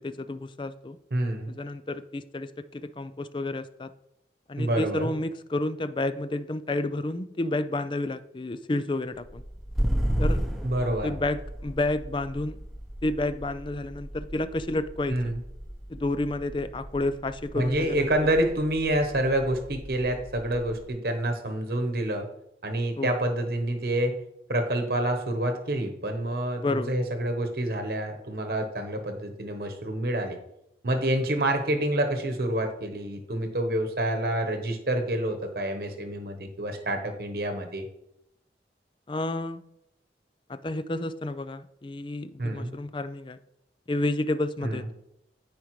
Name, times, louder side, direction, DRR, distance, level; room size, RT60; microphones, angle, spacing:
voice 1, 0.0-1.0 1.5-3.9 4.5-9.4 10.2-10.4 11.0-12.6 13.0-15.2 15.9-18.1 23.0-23.1 26.6-26.9 39.1-39.6 40.5-43.4 43.9-44.8, left 2 dB, 25° left, 12 dB, 0.4 m, -30 dB
voice 2, 1.1-1.5 4.6-5.1 10.6-11.1 15.1-15.4 17.5-22.3 22.6-24.2 24.5-30.4 30.8-37.9 42.4-42.7 44.6-44.8, right 1 dB, 55° right, 5 dB, 1.1 m, -27 dB
sound 1, 9.2-20.9, equal, ahead, 0.9 m, -34 dB
15.0 x 5.0 x 3.1 m, 0.81 s
head